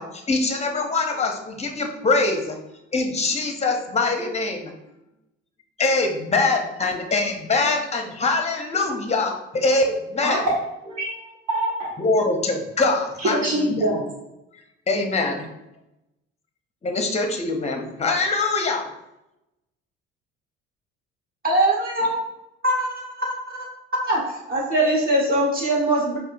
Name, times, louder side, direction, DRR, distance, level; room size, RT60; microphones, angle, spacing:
voice 1, 0.0-2.6 2.9-4.7 5.8-10.4 12.0-13.7 14.9-15.5 16.8-18.9, left 3 dB, 20° left, 4 dB, 0.7 m, -23 dB
voice 2, 10.9-11.9 13.2-14.0, right 1 dB, 55° right, -5 dB, 1.3 m, -25 dB
voice 3, 21.4-22.2 22.6-23.6 24.0-24.2 24.5-26.2, right 1 dB, 30° right, -3 dB, 1.4 m, -22 dB
4.7 x 2.2 x 2.6 m, 0.90 s
hypercardioid pair, 65°, 30 cm